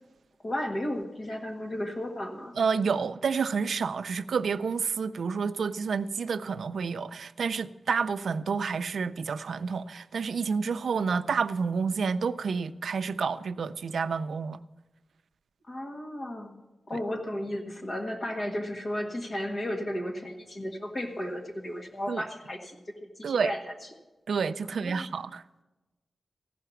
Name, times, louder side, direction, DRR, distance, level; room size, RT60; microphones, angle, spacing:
voice 1, 0.4-2.5 15.7-16.6 16.9-23.7 24.7-25.1, left 1 dB, 35° left, 1.6 m, -34 dB
voice 2, 2.6-14.6 16.9-17.0 22.1-22.2 23.2-23.5 24.3-25.4, right 5 dB, 90° right, 0.4 m, -29 dB
15.0 x 5.7 x 7.0 m
wide cardioid pair, 165°, 0 cm